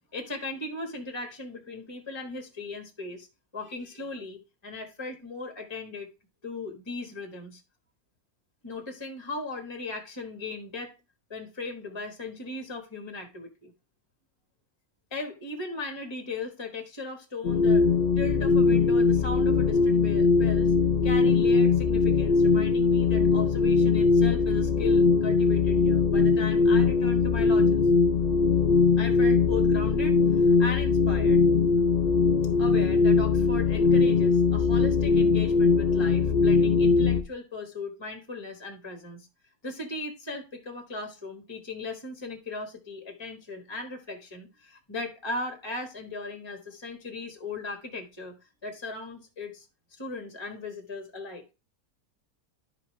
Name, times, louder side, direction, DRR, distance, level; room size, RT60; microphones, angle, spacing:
voice 1, 0.1-3.3 3.5-6.1 6.4-7.6 8.6-11.0 11.3-13.7 15.1-17.9 18.2-20.7 21.0-27.9 29.0-31.4 32.6-39.3 39.6-48.3 48.6-51.4, left 3 dB, 20° left, 1.3 m, -38 dB
sound 1, 17.4-37.2, left 4 dB, 60° left, 0.4 m, -21 dB
12.0 x 5.3 x 3.1 m
omnidirectional pair, 1.5 m